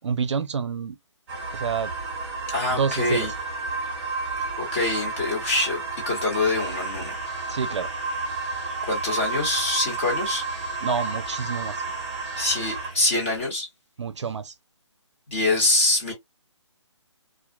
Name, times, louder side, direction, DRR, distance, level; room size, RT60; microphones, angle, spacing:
voice 1, 0.0-1.0 1.5-1.9 2.7-3.3 7.5-7.9 10.8-11.8 14.0-14.5, right 6 dB, 70° right, 0.5 m, -28 dB
sound 1, 1.3-12.9, right 3 dB, 20° right, 1.0 m, -31 dB
voice 2, 2.5-3.3 4.6-7.1 8.8-10.4 12.4-13.7 15.3-16.1, left 2 dB, 25° left, 1.2 m, -25 dB
sound 2, 6.5-13.4, right 2 dB, ahead, 0.7 m, -44 dB
2.4 x 2.2 x 2.2 m
hypercardioid pair, 160°, 16 cm